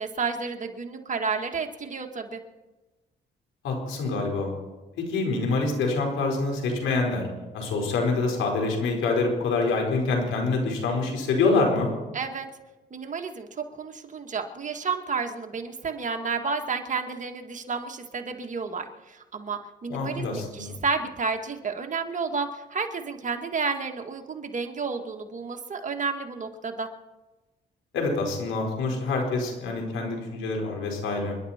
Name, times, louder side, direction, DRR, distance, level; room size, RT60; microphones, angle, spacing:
voice 1, 0.0-2.4 12.1-12.5 12.9-26.9, right 4 dB, 40° right, 4 dB, 1.8 m, -31 dB
voice 2, 3.6-4.5 5.0-7.3 7.5-11.9 19.9-20.8 27.9-31.4, left 3 dB, 80° left, 0 dB, 4.7 m, -26 dB
29.5 x 11.0 x 4.4 m, 1.2 s
cardioid pair, 90°, 20 cm